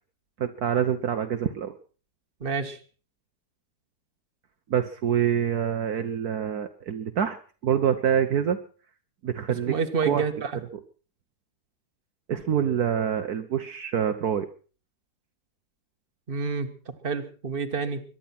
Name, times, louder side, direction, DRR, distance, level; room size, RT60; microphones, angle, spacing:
voice 1, 0.4-1.7 4.7-7.4 7.6-8.6 9.2-9.7 10.0-10.2 12.3-14.5, right 8 dB, 60° right, 7 dB, 1.5 m, -26 dB
voice 2, 2.4-2.8 9.7-10.5 16.3-18.0, right 5 dB, 30° right, 7 dB, 1.7 m, -29 dB
22.5 x 11.0 x 6.0 m, 0.39 s
omnidirectional pair, 1.9 m